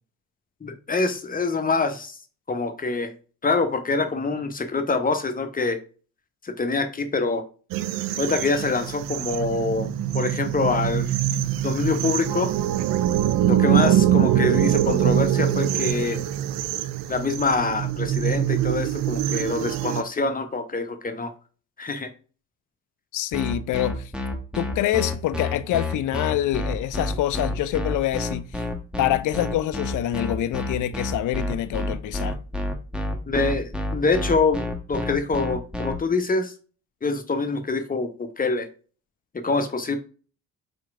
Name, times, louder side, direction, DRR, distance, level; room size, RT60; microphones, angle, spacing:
voice 1, 0.6-2.2 2.5-3.1 3.4-5.8 6.4-7.4 8.2-9.9 10.1-11.1 11.6-12.5 13.5-16.2 17.1-21.3 21.8-22.1 33.3-36.5 37.0-38.7 39.3-40.0, left 3 dB, 20° left, 0.8 m, -25 dB
sound 1, 7.7-20.0, right 11 dB, 50° right, 0.5 m, -23 dB
voice 2, 23.1-24.1 24.5-28.6 29.0-32.4, left 13 dB, 45° left, 0.5 m, -26 dB
sound 2, 23.3-35.9, left 1 dB, ahead, 1.1 m, -28 dB
4.5 x 4.4 x 2.5 m
figure-of-eight pair, 40°, 46 cm